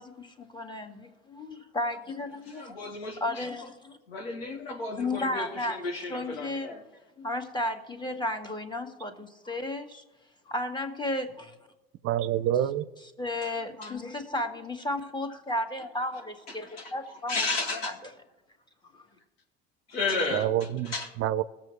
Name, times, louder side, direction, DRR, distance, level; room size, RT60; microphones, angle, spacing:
voice 1, 0.0-2.8 3.2-4.0 5.0-5.8 6.1-6.7 7.2-10.0 10.5-11.6 13.0-17.5 17.7-17.9 18.9-19.0, left 1 dB, 15° left, 1.8 m, -33 dB
voice 2, 2.5-3.5 4.1-6.8 13.4-13.5 13.8-13.9 16.6-16.9 17.3-17.9 19.9-21.1, left 3 dB, 80° left, 2.2 m, -33 dB
voice 3, 12.0-12.8 20.3-20.9 21.2-21.4, right 11 dB, 50° right, 0.6 m, -26 dB
20.5 x 7.4 x 3.2 m
hypercardioid pair, 70°, 30 cm